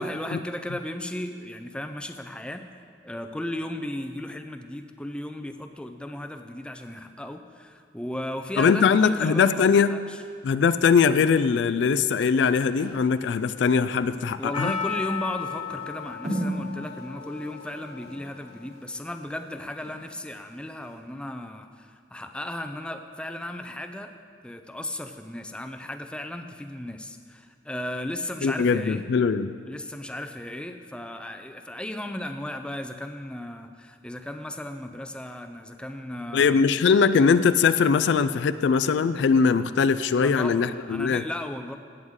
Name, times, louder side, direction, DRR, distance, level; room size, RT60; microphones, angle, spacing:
voice 1, 0.0-2.7 3.0-10.2 14.4-24.1 24.4-29.1 29.7-36.6 40.1-41.8, left 1 dB, 5° left, 6 dB, 0.4 m, -35 dB
voice 2, 8.6-10.0 10.4-14.7 28.4-29.6 36.3-41.2, left 5 dB, 65° left, 12 dB, 0.3 m, -21 dB
sound 1, 11.9-20.4 20.8-20.9, right 1 dB, 40° right, 2.9 m, -38 dB
Percussion, 14.5-18.9 19.1-19.2, left 6 dB, 30° left, 1.1 m, -35 dB
17.5 x 8.0 x 3.7 m, 2.2 s
head